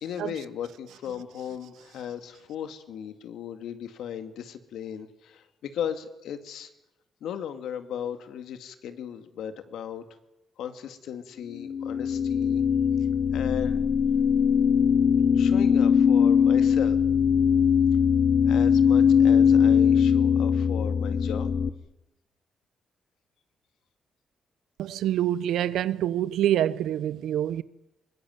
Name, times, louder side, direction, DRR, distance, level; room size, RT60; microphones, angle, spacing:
voice 1, 0.0-6.7 7.2-10.0 10.6-12.6 13.3-13.8 15.3-17.0 18.4-21.5, left 9 dB, 85° left, 2.2 m, -36 dB
sound 1, 11.6-21.7, left 7 dB, 45° left, 1.1 m, -21 dB
voice 2, 24.8-27.6, right 11 dB, 90° right, 0.9 m, -26 dB
23.5 x 21.5 x 9.4 m
cardioid pair, 110°, 0 cm